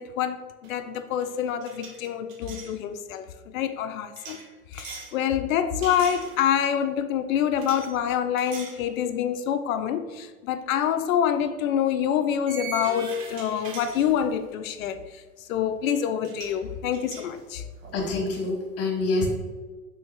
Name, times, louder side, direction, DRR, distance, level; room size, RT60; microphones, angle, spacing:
voice 1, 0.0-4.4 4.7-17.6, left 9 dB, 60° left, 10 dB, 0.5 m, -26 dB
sound 1, 0.6-2.8 4.2-5.2 5.8-6.7 7.6-7.9 8.4-8.8 9.3-9.4 11.0-11.1 12.5-14.5 15.9-16.0 16.2-16.6 16.9-18.4, right 4 dB, 55° right, 0.9 m, -41 dB
voice 2, 17.9-19.3, left 3 dB, 30° left, 1 dB, 1.3 m, -26 dB
4.1 x 3.5 x 3.2 m, 1.3 s
figure-of-eight pair, 95°, 47 cm